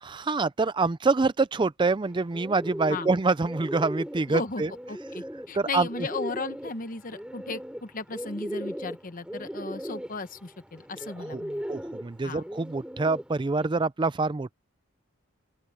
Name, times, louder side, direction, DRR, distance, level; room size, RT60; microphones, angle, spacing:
voice 1, 0.0-4.7 5.5-5.9 11.3-11.4 11.7-14.6, right 3 dB, 20° right, 0.4 m, -26 dB
Bird, 2.0-13.7, equal, 5° right, 2.9 m, -38 dB
voice 2, 4.3-4.6 4.9-11.6 12.2-12.4, left 3 dB, 40° left, 1.1 m, -36 dB
open air
head